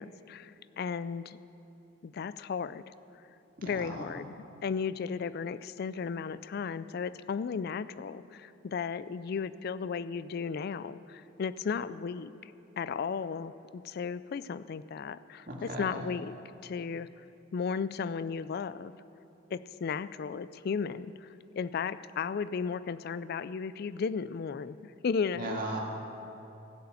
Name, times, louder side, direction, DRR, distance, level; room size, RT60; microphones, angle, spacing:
voice 1, 0.0-1.4 2.0-2.9 3.6-16.3 16.6-17.1 17.5-18.9 19.5-21.3 21.6-25.6, left 6 dB, 50° left, 16 dB, 0.3 m, -35 dB
voice 2, 3.6-4.1 15.5-16.0 25.3-25.8, right 2 dB, 40° right, -2 dB, 2.3 m, -37 dB
16.0 x 6.8 x 8.2 m, 2.8 s
head